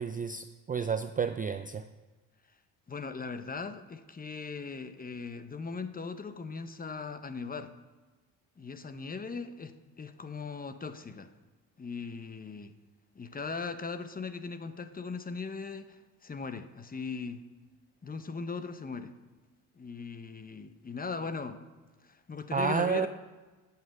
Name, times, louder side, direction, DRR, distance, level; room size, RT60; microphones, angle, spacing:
voice 1, 0.0-1.8 22.5-23.1, right 6 dB, 20° right, 9 dB, 0.4 m, -30 dB
voice 2, 2.9-7.7 8.6-11.3 11.8-12.7 13.2-17.4 18.0-19.2 19.8-21.6 22.0-23.1, left 4 dB, 20° left, 10 dB, 0.8 m, -39 dB
11.5 x 5.7 x 8.3 m, 1.3 s
cardioid pair, 100°, 42 cm